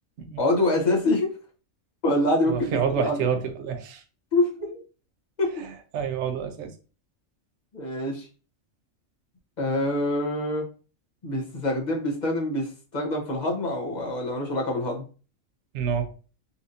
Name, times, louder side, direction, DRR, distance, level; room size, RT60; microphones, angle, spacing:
voice 1, 0.4-1.3 2.0-3.3 4.3-4.7 5.4-5.6 7.7-8.3 9.6-10.7 11.2-15.0, left 1 dB, 40° left, 0.7 m, -25 dB
voice 2, 2.5-4.0 4.6-4.7 5.9-6.7 15.7-16.1, right 7 dB, 65° right, 0.9 m, -27 dB
4.1 x 2.6 x 2.5 m
omnidirectional pair, 1.4 m